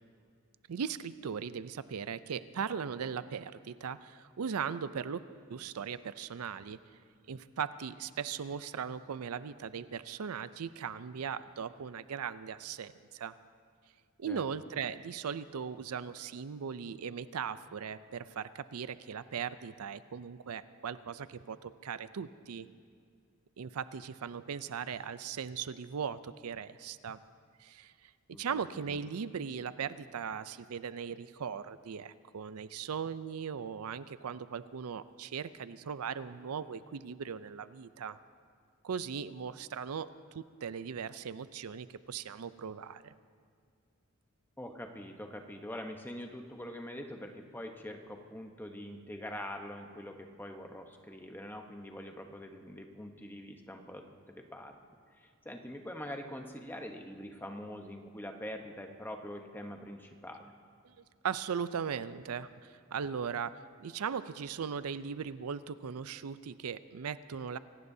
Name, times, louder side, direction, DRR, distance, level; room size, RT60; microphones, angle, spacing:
voice 1, 0.7-7.0 7.3-13.4 14.2-22.7 23.6-27.2 27.6-28.1 28.4-38.2 38.8-43.1 60.8-67.6, right 7 dB, 85° right, 14 dB, 0.5 m, -39 dB
voice 2, 28.3-28.7 44.6-54.8 55.1-60.5, left 1 dB, 10° left, 4 dB, 0.9 m, -44 dB
25.5 x 18.0 x 2.7 m, 2.1 s
head